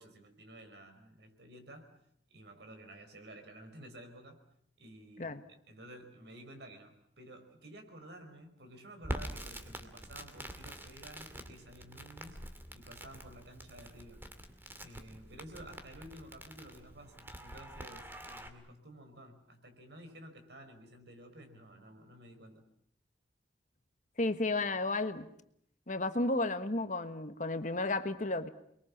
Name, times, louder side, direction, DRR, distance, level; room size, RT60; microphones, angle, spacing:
voice 1, 0.0-1.9 2.3-4.5 4.8-12.4 12.7-14.2 14.8-22.6, right 1 dB, 70° right, 5.2 m, -52 dB
Crackle, 9.0-18.5, right 1 dB, 10° right, 2.2 m, -46 dB
voice 2, 24.2-25.3 25.9-28.5, left 2 dB, 45° left, 1.4 m, -32 dB
29.5 x 22.5 x 7.3 m
head